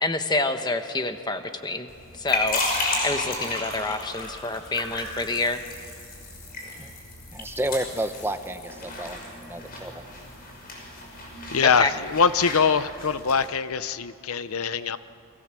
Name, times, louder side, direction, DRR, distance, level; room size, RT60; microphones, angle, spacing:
voice 1, 0.0-2.6 3.0-5.6 11.8-11.9, left 2 dB, 20° left, 7 dB, 1.2 m, -27 dB
sound 1, 1.9-13.5, left 2 dB, 45° left, 6.2 m, -33 dB
voice 2, 7.3-10.0, right 1 dB, 10° right, 8 dB, 0.8 m, -31 dB
voice 3, 11.5-15.0, left 6 dB, 85° left, 13 dB, 0.8 m, -23 dB
29.5 x 23.0 x 7.6 m, 2.6 s
head